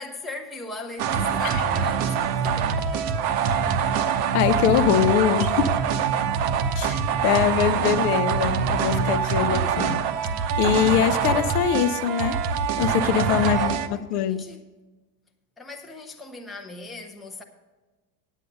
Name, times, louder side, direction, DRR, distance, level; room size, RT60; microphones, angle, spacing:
voice 1, 0.0-3.2 13.3-14.6 15.6-17.4, left 3 dB, ahead, 0.5 m, -39 dB
sound 1, 1.0-13.9, right 7 dB, 70° right, 0.9 m, -24 dB
voice 2, 4.3-5.8 6.8-10.0 10.6-12.4 12.8-14.5, left 10 dB, 60° left, 0.6 m, -23 dB
9.5 x 8.2 x 5.4 m
supercardioid pair, 120°, 50 cm